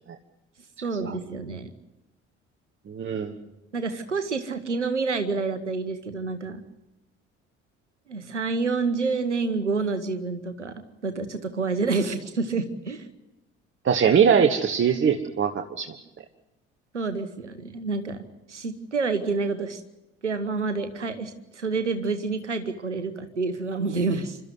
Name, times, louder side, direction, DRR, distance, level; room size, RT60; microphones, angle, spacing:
voice 1, 0.8-1.7 3.7-6.6 8.1-10.7 11.0-13.1 16.9-18.2 18.5-19.8 20.2-24.4, right 4 dB, 85° right, 10 dB, 1.2 m, -28 dB
voice 2, 2.9-3.4 13.8-15.9, right 7 dB, 35° right, 5 dB, 1.4 m, -21 dB
28.0 x 13.0 x 9.6 m, 0.94 s
figure-of-eight pair, 50°, 35 cm